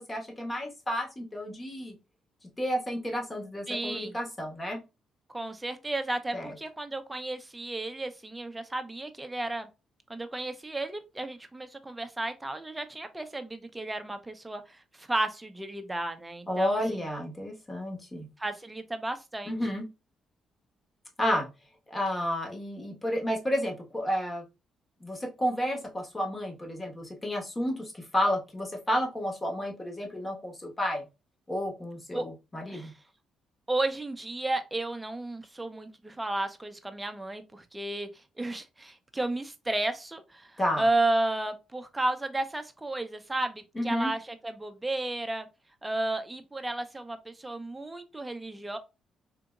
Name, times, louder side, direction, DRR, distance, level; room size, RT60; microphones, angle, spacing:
voice 1, 0.0-1.9 2.6-4.8 6.3-6.5 16.5-18.3 19.4-19.8 21.2-21.5 21.9-24.4 25.0-31.1 31.5-32.9 40.6-40.8 43.7-44.1, equal, 20° left, 1.3 m, -31 dB
voice 2, 3.7-4.1 5.3-9.7 10.1-16.8 18.4-19.6 32.1-32.2 32.7-32.9 33.7-38.1 38.4-45.5 45.8-48.8, right 2 dB, 15° right, 0.6 m, -33 dB
3.8 x 2.7 x 2.3 m
cardioid pair, 90°, 0 cm